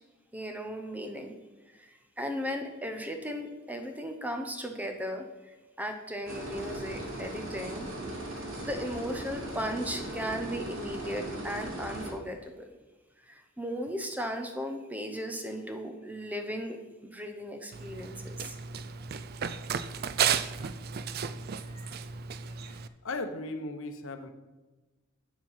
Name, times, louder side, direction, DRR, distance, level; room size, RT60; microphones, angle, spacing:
voice 1, 0.3-1.3 1.7-7.9 8.6-12.7 13.2-16.8 17.0-18.6, equal, 5° right, 5 dB, 0.7 m, -36 dB
sound 1, 6.2-12.1, right 1 dB, 70° right, 2.2 m, -38 dB
Run, 17.7-22.9, right 7 dB, 45° right, 0.4 m, -33 dB
voice 2, 21.6-22.0 22.5-24.3, left 2 dB, 70° left, 8 dB, 0.8 m, -38 dB
7.6 x 7.4 x 5.6 m, 1.2 s
head